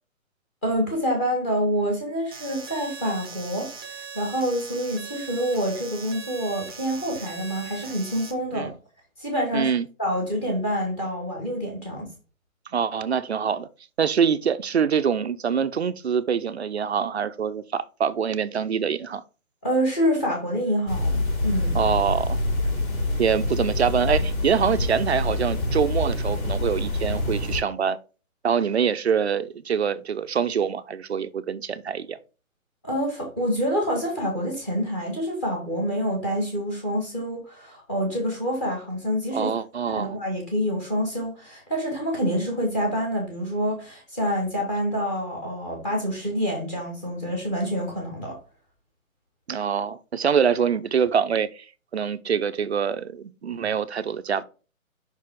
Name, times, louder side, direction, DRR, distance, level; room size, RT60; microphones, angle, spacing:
voice 1, 0.6-8.7 9.2-9.7 10.0-12.1 19.6-21.8 32.8-39.5 39.9-48.4, equal, 10° left, 1.1 m, -27 dB
sound 1, 2.3-8.3, right 5 dB, 15° right, 0.7 m, -40 dB
voice 2, 9.5-9.8 12.7-13.7 14.0-19.2 21.7-22.4 23.2-28.0 28.4-32.2 39.3-40.1 49.5-51.6 51.9-54.4, right 7 dB, 50° right, 0.6 m, -25 dB
sound 2, 20.9-27.6, left 1 dB, 80° left, 3.5 m, -26 dB
5.5 x 4.7 x 3.6 m
hypercardioid pair, 170°, 42 cm